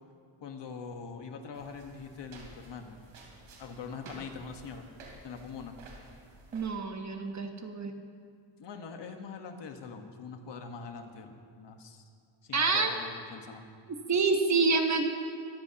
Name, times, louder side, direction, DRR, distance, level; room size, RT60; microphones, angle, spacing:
voice 1, 0.4-3.0 3.6-4.9 5.2-5.8 8.6-12.0 12.4-13.7, left 5 dB, 60° left, 5 dB, 1.5 m, -43 dB
sound 1, 1.5-6.7, right 2 dB, 80° right, 3.1 m, -52 dB
voice 2, 6.5-7.9 12.5-12.9 14.1-15.1, right 4 dB, 35° right, 5 dB, 1.2 m, -27 dB
24.0 x 14.0 x 2.9 m, 2.2 s
cardioid pair, 135°, 48 cm